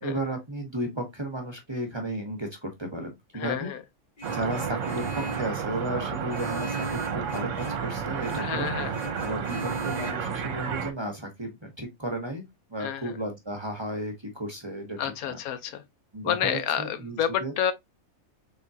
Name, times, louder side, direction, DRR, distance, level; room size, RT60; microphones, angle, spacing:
voice 1, 0.0-3.7 4.3-8.7 9.2-12.4 12.7-15.4 16.1-17.5, right 1 dB, 20° right, 0.9 m, -34 dB
voice 2, 3.3-3.8 8.4-8.9 12.8-13.2 15.0-15.8 16.2-17.7, left 9 dB, 85° left, 1.2 m, -29 dB
Vehicle horn car horn honking, 4.2-5.6 6.3-7.9 8.2-8.6 8.9-10.1, right 1 dB, 40° left, 0.8 m, -39 dB
sound 1, 4.2-10.9, right 7 dB, 65° right, 1.0 m, -31 dB
4.0 x 3.6 x 2.7 m
omnidirectional pair, 1.5 m